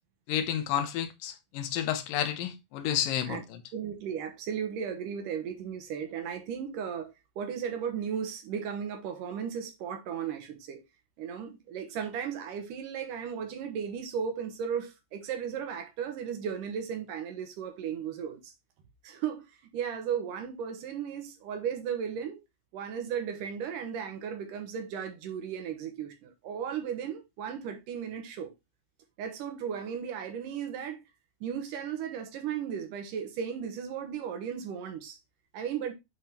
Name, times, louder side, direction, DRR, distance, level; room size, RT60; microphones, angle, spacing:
voice 1, 0.3-3.6, left 10 dB, 75° left, 2.1 m, -31 dB
voice 2, 3.7-10.8 11.2-18.5 19.0-19.4 19.7-22.4 22.7-28.5 29.2-31.0 31.4-35.2 35.5-35.9, right 8 dB, 70° right, 2.2 m, -35 dB
9.7 x 3.7 x 4.3 m
omnidirectional pair, 4.9 m